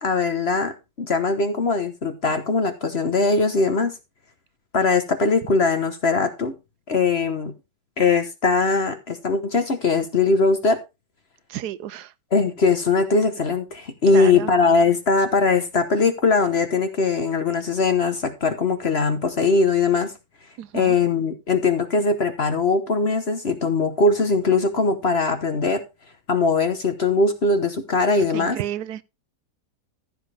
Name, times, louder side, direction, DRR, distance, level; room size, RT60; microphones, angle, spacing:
voice 1, 0.0-3.9 4.7-6.5 6.9-7.5 8.0-10.8 12.3-20.1 20.7-25.8 26.3-28.6, left 4 dB, 40° left, 1.2 m, -21 dB
voice 2, 11.5-12.1 14.1-14.5 20.6-21.0 28.3-29.0, right 12 dB, 70° right, 1.2 m, -31 dB
14.5 x 7.4 x 3.3 m
omnidirectional pair, 1.8 m